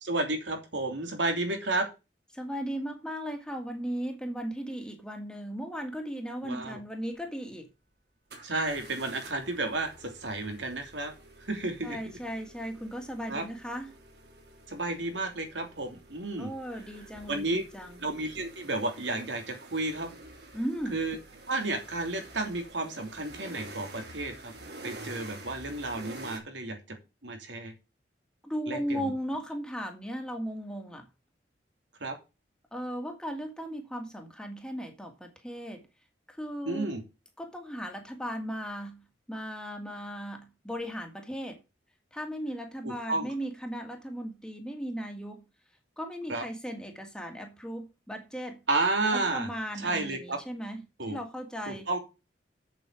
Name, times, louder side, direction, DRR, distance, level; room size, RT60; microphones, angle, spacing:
voice 1, 0.0-1.9 6.4-6.8 8.4-11.1 11.4-12.2 13.3-13.4 14.7-16.5 17.3-17.6 18.0-20.1 20.9-21.2 21.5-24.5 24.8-27.0 27.2-27.7 28.7-29.1 32.0-32.2 36.6-37.0 42.8-43.3 46.3-46.4 48.7-49.5 49.8-50.4 51.0-51.2 51.7-52.0, right 2 dB, 85° right, 3.1 m, -32 dB
voice 2, 2.3-7.7 11.8-14.0 16.4-18.0 20.5-21.0 28.4-31.1 32.7-35.9 36.3-36.9 37.4-39.0 39.3-41.6 42.1-45.4 46.0-48.6 49.1-50.8 51.1-51.9, equal, 5° left, 1.9 m, -37 dB
sound 1, 7.1-7.2 8.3-26.4, right 2 dB, 60° right, 3.2 m, -49 dB
7.8 x 7.6 x 4.9 m
head